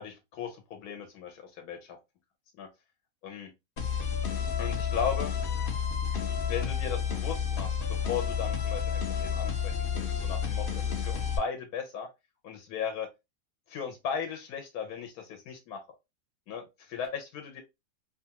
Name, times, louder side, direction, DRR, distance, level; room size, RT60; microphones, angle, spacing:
voice 1, 0.0-2.0 2.6-2.7 3.2-3.5 4.6-5.3 6.5-12.1 12.4-13.1 13.7-15.8 16.5-17.6, left 7 dB, 80° left, 1.1 m, -37 dB
sound 1, 3.8-11.4, left 7 dB, 55° left, 0.6 m, -30 dB
2.8 x 2.3 x 2.7 m
omnidirectional pair, 1.6 m